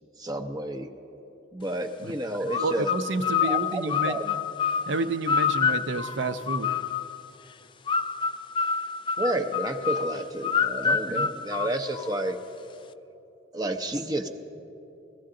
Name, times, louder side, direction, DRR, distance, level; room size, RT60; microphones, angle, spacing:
voice 1, 0.2-0.9 1.5-2.9 3.4-4.3 9.2-12.4 13.5-14.3, right 1 dB, 20° right, 5 dB, 0.6 m, -30 dB
sound 1, 2.5-7.2 7.9-12.3, left 6 dB, 25° left, 0.3 m, -28 dB
voice 2, 2.6-4.2 4.9-6.8 10.8-11.3, right 3 dB, 70° right, 10 dB, 0.6 m, -30 dB
21.5 x 15.0 x 3.8 m, 2.8 s
head